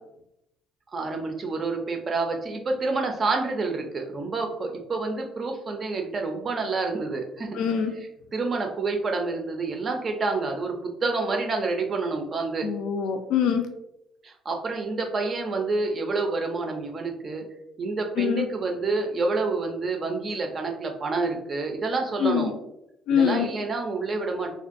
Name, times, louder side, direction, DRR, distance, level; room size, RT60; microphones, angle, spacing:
voice 1, 0.9-7.6 8.3-12.7 14.2-17.4 17.8-22.5 23.1-24.5, right 3 dB, 30° right, 3 dB, 0.4 m, -28 dB
voice 2, 7.5-7.9 12.6-13.7 18.2-18.5 22.2-22.5 23.1-23.5, left 8 dB, 80° left, 5 dB, 0.3 m, -24 dB
2.5 x 2.2 x 2.5 m, 0.84 s
cardioid pair, 140°, 0 cm